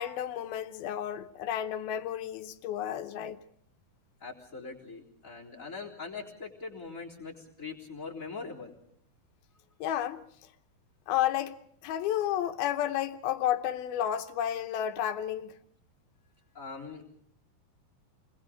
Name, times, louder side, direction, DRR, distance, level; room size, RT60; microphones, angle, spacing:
voice 1, 0.0-3.4 9.8-10.2 11.1-11.6 11.8-15.6, left 11 dB, 80° left, 2.9 m, -31 dB
voice 2, 4.2-8.7 16.5-17.0, left 4 dB, 20° left, 3.9 m, -42 dB
29.5 x 21.0 x 5.1 m
omnidirectional pair, 4.4 m